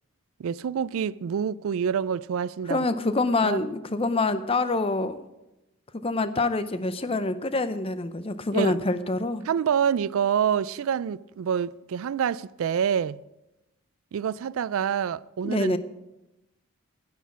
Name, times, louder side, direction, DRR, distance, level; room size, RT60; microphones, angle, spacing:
voice 1, 0.4-2.8 3.4-3.6 8.5-8.8 9.5-13.2 14.1-15.8, right 8 dB, 70° right, 0.3 m, -27 dB
voice 2, 2.7-5.2 6.0-9.4 15.4-15.8, left 2 dB, 25° left, 0.5 m, -26 dB
10.0 x 9.5 x 5.9 m
head